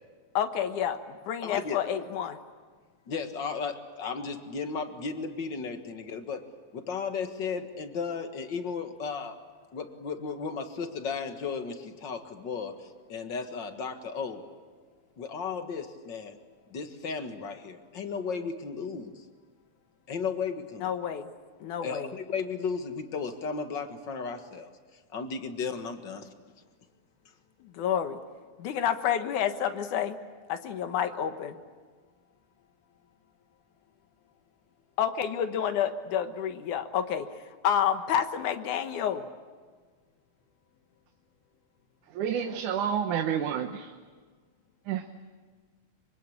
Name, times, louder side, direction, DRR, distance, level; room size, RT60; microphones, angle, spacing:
voice 1, 0.3-2.4 20.8-21.3 21.6-22.1 27.7-28.2 28.6-30.2 30.5-31.6 35.0-37.3 37.6-39.2, left 9 dB, 85° left, 8 dB, 2.8 m, -29 dB
voice 2, 1.4-1.8 3.1-6.5 6.7-9.4 9.7-14.4 15.2-16.4 16.7-19.2 20.1-20.9 21.8-24.7 25.1-26.3, left 5 dB, 45° left, 7 dB, 1.9 m, -35 dB
voice 3, 42.1-43.9 44.9-45.1, right 8 dB, 85° right, 5 dB, 2.6 m, -29 dB
25.0 x 24.0 x 8.7 m, 1.5 s
omnidirectional pair, 3.4 m